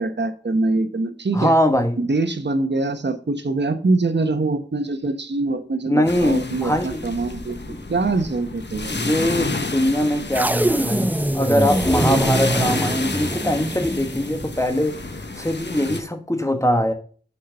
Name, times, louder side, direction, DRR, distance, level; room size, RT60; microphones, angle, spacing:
voice 1, 0.0-1.5 2.0-7.6 7.9-9.0, right 3 dB, 80° right, 8 dB, 1.0 m, -23 dB
voice 2, 1.3-2.0 5.9-7.0 7.7-7.9 8.9-15.0 15.4-16.9, equal, 15° left, 7 dB, 1.3 m, -22 dB
sound 1, 6.1-16.0, left 3 dB, 85° left, 1.0 m, -30 dB
sound 2, 10.3-14.6, right 1 dB, 10° right, 0.6 m, -24 dB
6.5 x 5.7 x 6.4 m, 0.43 s
wide cardioid pair, 50°, 18 cm